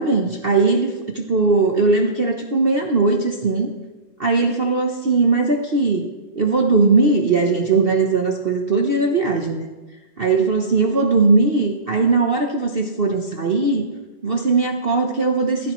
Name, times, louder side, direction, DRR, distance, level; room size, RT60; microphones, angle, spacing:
voice 1, 0.0-3.7 4.2-6.1 6.3-9.7 10.2-13.9 14.2-15.7, right 3 dB, 40° right, 2 dB, 0.8 m, -19 dB
16.5 x 14.0 x 3.1 m, 1.2 s
omnidirectional pair, 2.1 m